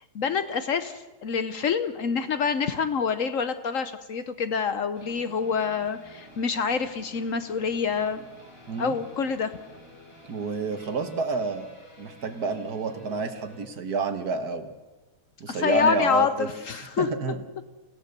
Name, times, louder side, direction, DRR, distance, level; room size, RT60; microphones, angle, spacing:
voice 1, 0.1-8.3 8.8-9.5 15.5-17.1, left 6 dB, 60° left, 11 dB, 0.9 m, -27 dB
sound 1, 4.9-13.7, left 1 dB, 25° left, 3.8 m, -50 dB
voice 2, 10.2-14.7 15.4-16.5 17.0-17.4, right 4 dB, 50° right, 7 dB, 1.8 m, -29 dB
28.0 x 16.0 x 6.7 m, 1.2 s
omnidirectional pair, 2.3 m